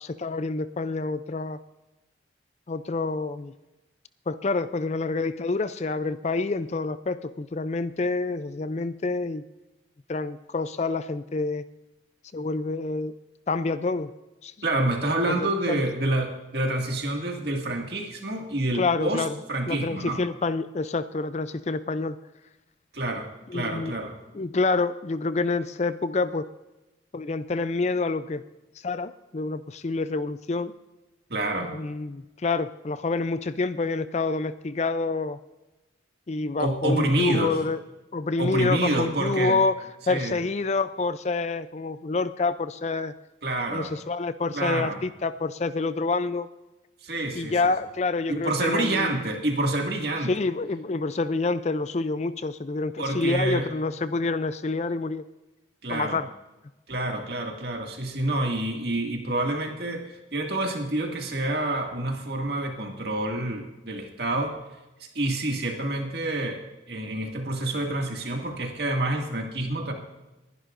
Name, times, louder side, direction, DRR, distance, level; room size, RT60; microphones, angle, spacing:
voice 1, 0.0-1.6 2.7-3.5 4.3-9.4 10.1-11.6 12.3-13.1 13.5-14.1 14.4-14.5 15.3-15.8 18.7-19.4 19.7-22.2 23.5-23.9 24.3-26.5 27.1-28.4 28.8-30.7 31.6-35.4 36.3-37.8 38.1-39.8 40.1-43.1 43.7-46.5 47.3-49.1 50.2-55.2 55.9-56.3, left 3 dB, 35° left, 13 dB, 0.4 m, -27 dB
voice 2, 14.6-20.2 22.9-24.2 31.3-31.7 36.6-37.6 38.4-39.6 40.1-40.4 43.4-43.9 44.5-45.0 47.0-47.6 48.3-50.3 53.0-53.7 55.8-56.2 56.9-64.5 65.1-66.6 66.9-69.9, right 1 dB, 55° right, 2 dB, 2.1 m, -28 dB
21.0 x 11.0 x 2.6 m, 1.0 s
head